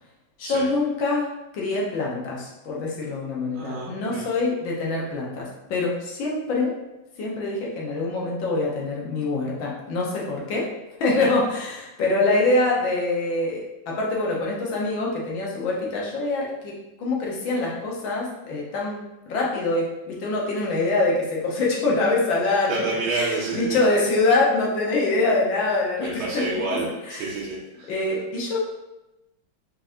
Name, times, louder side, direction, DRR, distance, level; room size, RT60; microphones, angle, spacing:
voice 1, 0.4-6.7 7.2-10.7 11.0-22.8 23.1-26.6 27.1-27.3 27.9-28.6, left 2 dB, 70° left, -3 dB, 1.7 m, -25 dB
voice 2, 3.5-4.3 11.2-11.3 22.7-23.8 26.0-27.9, right 3 dB, 85° right, -5 dB, 1.6 m, -29 dB
4.6 x 4.3 x 2.6 m, 0.98 s
omnidirectional pair, 2.2 m